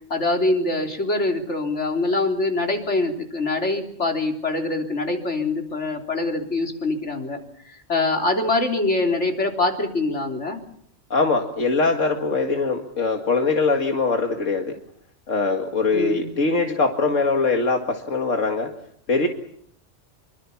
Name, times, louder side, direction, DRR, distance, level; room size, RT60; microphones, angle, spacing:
voice 1, 0.1-7.4 7.7-10.6 15.9-16.3, left 2 dB, 70° left, 3 dB, 3.9 m, -24 dB
voice 2, 11.1-14.7 15.3-18.7 19.1-19.3, left 3 dB, 90° left, 3 dB, 2.3 m, -22 dB
26.0 x 24.0 x 7.2 m, 0.67 s
omnidirectional pair, 1.3 m